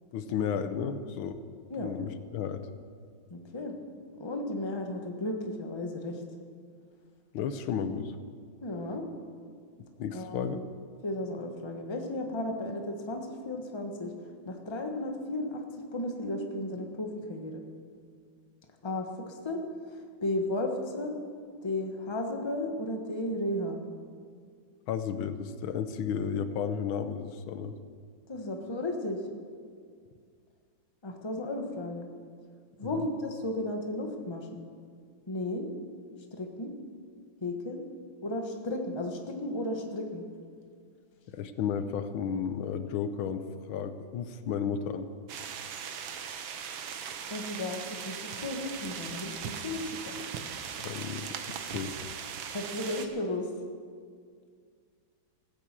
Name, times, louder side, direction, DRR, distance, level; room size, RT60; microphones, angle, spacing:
voice 1, 0.1-1.4 1.8-2.6 7.3-8.1 10.0-10.6 24.9-27.7 32.9-33.1 41.3-43.4 43.7-45.1 50.8-51.4 51.7-51.9, left 7 dB, 85° left, 11 dB, 1.6 m, -33 dB
voice 2, 3.3-3.8 4.2-6.2 8.6-9.0 10.1-10.6 11.0-14.1 14.5-15.6 15.9-17.6 18.8-19.6 20.2-21.1 21.6-23.8 28.3-29.2 31.0-32.1 32.8-34.6 35.3-35.7 36.3-36.7 37.4-37.8 38.2-40.2 47.3-50.2 52.5-53.5, left 1 dB, 15° left, 3 dB, 1.1 m, -34 dB
sound 1, 45.3-53.1, right 7 dB, 80° right, 1.7 m, -39 dB
16.0 x 9.8 x 7.4 m, 2.1 s
omnidirectional pair, 2.2 m